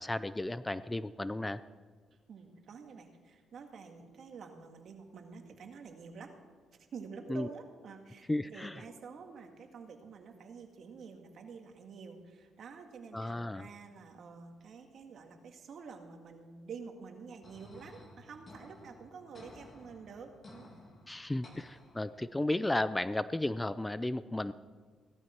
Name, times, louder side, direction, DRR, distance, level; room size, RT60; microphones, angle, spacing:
voice 1, 0.0-1.6 7.3-7.5 8.3-8.8 13.1-13.7 21.1-24.5, left 1 dB, 10° left, 15 dB, 0.4 m, -34 dB
voice 2, 2.3-6.3 6.7-20.7, right 5 dB, 60° right, 4 dB, 1.9 m, -49 dB
sound 1, 17.4-22.4, left 1 dB, 30° left, 2.7 m, -55 dB
17.0 x 12.5 x 4.5 m, 1.5 s
cardioid pair, 90°, 0 cm